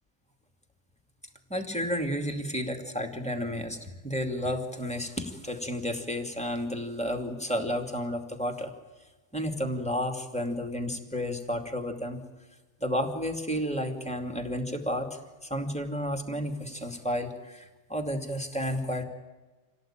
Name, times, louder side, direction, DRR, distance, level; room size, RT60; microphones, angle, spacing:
voice 1, 1.5-8.7 9.3-12.2 12.8-19.0, equal, 5° left, 3 dB, 2.4 m, -32 dB
27.0 x 17.5 x 8.9 m, 1.2 s
omnidirectional pair, 2.0 m